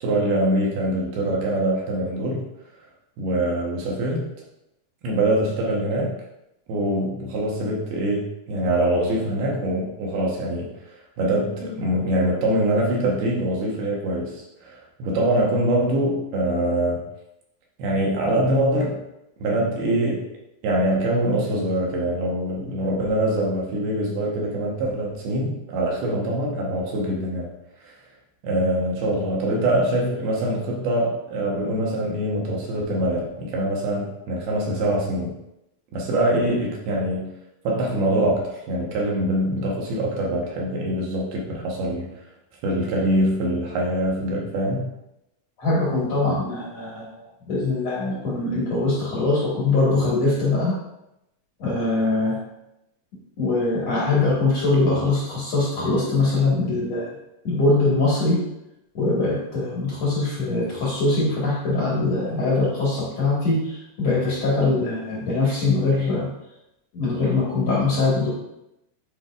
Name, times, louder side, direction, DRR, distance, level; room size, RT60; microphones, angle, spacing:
voice 1, 0.0-2.4 3.2-4.3 5.0-6.1 6.7-10.7 11.2-17.0 17.8-19.0 19.4-20.3 20.6-27.5 28.4-35.3 35.9-37.3 37.6-42.1 42.6-44.9, right 1 dB, 70° right, -2 dB, 2.7 m, -24 dB
voice 2, 45.6-50.8 51.6-52.4 53.4-57.1 57.4-58.4 58.9-66.3 66.9-68.3, left 3 dB, 60° left, -7 dB, 1.8 m, -22 dB
11.0 x 4.9 x 2.5 m, 0.87 s
omnidirectional pair, 5.6 m